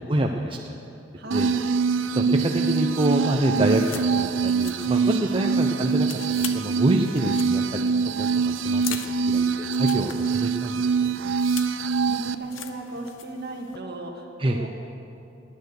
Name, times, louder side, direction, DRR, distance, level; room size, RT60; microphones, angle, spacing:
voice 1, 0.1-0.8 1.3-1.5 2.1-6.1 6.4-11.3 14.4-14.6, right 1 dB, 25° right, 3 dB, 0.7 m, -26 dB
voice 2, 1.1-1.7 5.3-5.7 9.2-10.0 11.6-14.7, right 1 dB, 55° right, 2 dB, 1.9 m, -37 dB
sound 1, 1.3-12.3, right 5 dB, 80° right, 0.5 m, -24 dB
sound 2, 2.5-13.8, left 9 dB, 75° left, 0.9 m, -43 dB
19.0 x 9.2 x 6.5 m, 2.7 s
head